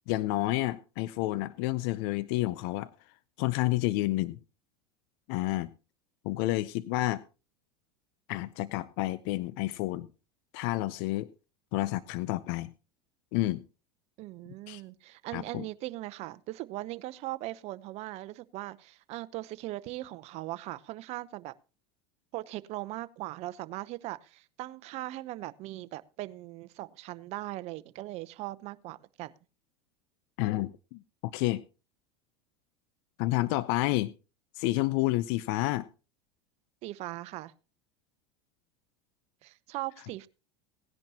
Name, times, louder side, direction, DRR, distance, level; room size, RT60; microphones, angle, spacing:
voice 1, 0.1-2.9 3.4-4.4 5.3-5.7 6.2-7.2 8.3-10.1 10.5-11.3 11.7-12.7 13.3-13.6 14.7-14.8 15.3-15.6 30.4-31.6 33.2-34.1 34.6-35.9, left 18 dB, 65° left, 0.6 m, -30 dB
voice 2, 14.2-21.5 22.3-29.3 36.8-37.5 39.4-40.3, right 17 dB, 50° right, 0.8 m, -39 dB
18.0 x 10.5 x 2.9 m
hypercardioid pair, 100°, 14 cm